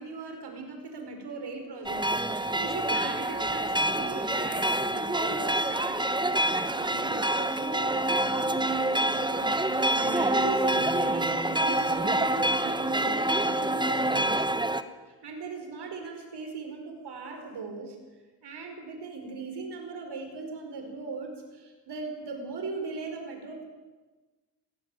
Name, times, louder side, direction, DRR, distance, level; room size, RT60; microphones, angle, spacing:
voice 1, 0.0-14.5 15.1-18.0 18.4-23.7, right 4 dB, 90° right, 4 dB, 5.2 m, -39 dB
sound 1, 1.9-14.8, right 1 dB, 10° right, 1.2 m, -27 dB
19.0 x 18.5 x 9.2 m, 1.2 s
wide cardioid pair, 105°, 39 cm